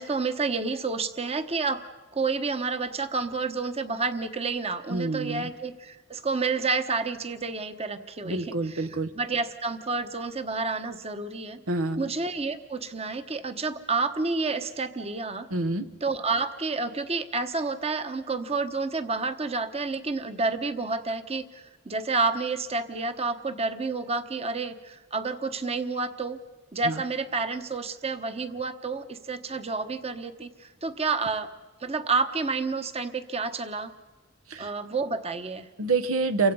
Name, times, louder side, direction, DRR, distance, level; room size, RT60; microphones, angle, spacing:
voice 1, 0.0-1.8 2.1-8.9 9.1-11.6 12.0-15.5 16.0-26.4 26.7-31.5 31.8-33.9 34.6-35.7, right 4 dB, 30° right, 9 dB, 1.1 m, -29 dB
voice 2, 4.9-5.5 8.2-9.1 11.7-12.1 15.5-15.8 26.8-27.0 34.5-34.7 35.8-36.5, right 3 dB, 90° right, 10 dB, 1.2 m, -27 dB
29.5 x 24.5 x 5.5 m, 1.2 s
head